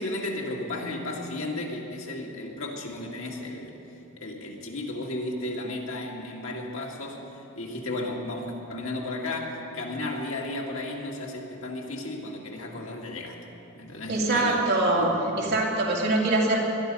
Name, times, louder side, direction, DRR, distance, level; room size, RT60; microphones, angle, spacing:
voice 1, 0.0-3.8 4.2-13.4 13.8-14.7 15.0-15.5, left 2 dB, 75° left, -1 dB, 2.3 m, -34 dB
voice 2, 14.1-15.1 15.4-16.6, right 2 dB, 55° right, -3 dB, 2.7 m, -23 dB
20.0 x 12.5 x 5.5 m, 2.9 s
head